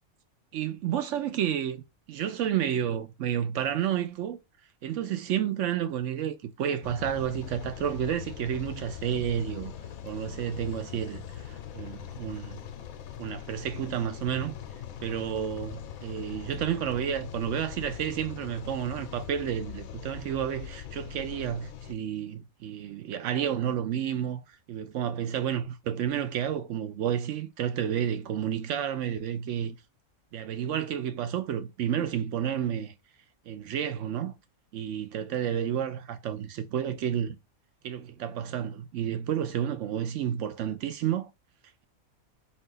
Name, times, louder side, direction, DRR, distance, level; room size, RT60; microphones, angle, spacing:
voice 1, 0.5-1.8 2.1-4.4 4.8-9.7 10.0-12.6 13.2-14.5 15.0-24.4 24.7-29.8 30.3-32.9 33.5-34.3 34.7-37.4 37.8-41.3, right 9 dB, 65° right, 0.8 m, -31 dB
sound 1, 6.8-21.9, left 9 dB, 75° left, 1.0 m, -41 dB
4.0 x 2.5 x 3.8 m
omnidirectional pair, 1.5 m